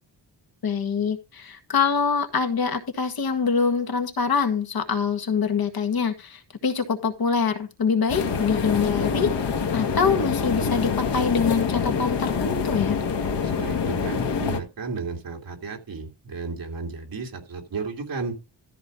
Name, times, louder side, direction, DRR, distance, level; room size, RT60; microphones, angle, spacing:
voice 1, 0.6-9.3 9.7-13.0, left 6 dB, 55° left, 7 dB, 1.7 m, -24 dB
sound 1, 8.1-14.6, left 6 dB, 75° left, 1.7 m, -26 dB
voice 2, 13.4-18.4, right 4 dB, 55° right, 2 dB, 2.8 m, -33 dB
13.5 x 4.7 x 5.1 m, 0.27 s
wide cardioid pair, 150°, 42 cm